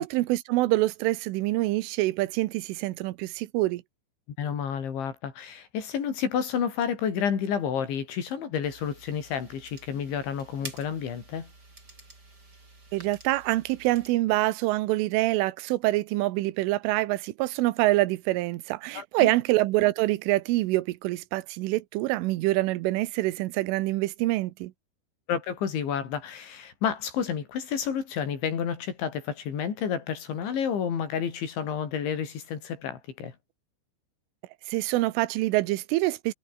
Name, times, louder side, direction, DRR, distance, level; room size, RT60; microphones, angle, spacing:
voice 1, 0.0-3.8 12.9-24.7 34.7-36.3, right 18 dB, 90° right, 3.5 m, -26 dB
voice 2, 4.4-11.5 18.9-19.3 25.3-33.4, left 7 dB, 70° left, 6.2 m, -30 dB
sound 1, 8.6-14.1, right 2 dB, 20° right, 5.9 m, -48 dB
omnidirectional pair, 5.5 m